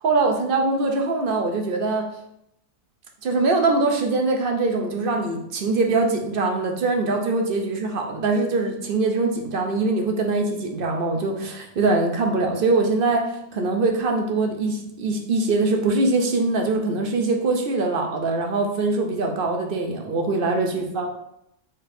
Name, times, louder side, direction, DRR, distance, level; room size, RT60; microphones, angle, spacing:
voice 1, 0.0-2.1 3.2-21.2, right 3 dB, 55° right, 2 dB, 0.7 m, -23 dB
4.2 x 3.8 x 2.6 m, 0.77 s
omnidirectional pair, 1.2 m